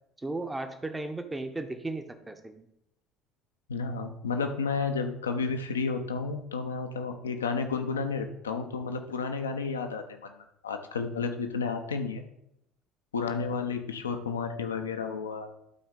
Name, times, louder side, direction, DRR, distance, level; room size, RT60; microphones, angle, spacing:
voice 1, 0.2-2.7, right 2 dB, 15° right, 8 dB, 1.0 m, -35 dB
voice 2, 3.7-10.3 10.6-12.2 13.1-15.5, left 5 dB, 80° left, 6 dB, 0.8 m, -31 dB
12.0 x 4.3 x 3.8 m, 0.80 s
figure-of-eight pair, 60°, 0 cm